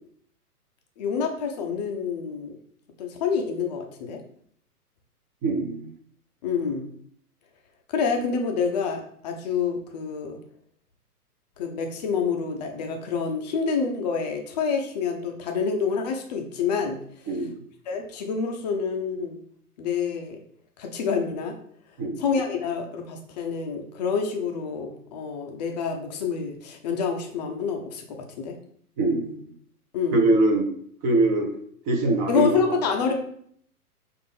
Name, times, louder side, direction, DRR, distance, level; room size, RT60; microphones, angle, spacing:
voice 1, 1.0-2.6 3.0-4.2 6.4-6.9 7.9-10.4 11.6-17.0 17.9-19.4 19.8-20.4 20.8-21.5 22.2-28.5 29.9-30.2 32.3-33.1, left 5 dB, 30° left, 3 dB, 0.5 m, -27 dB
voice 2, 5.4-5.9 17.3-17.6 22.0-22.2 29.0-29.4 30.1-30.7 31.0-31.5 31.9-32.8, right 2 dB, 25° right, 3 dB, 0.6 m, -23 dB
5.0 x 2.5 x 3.5 m, 0.63 s
hypercardioid pair, 120°, 46 cm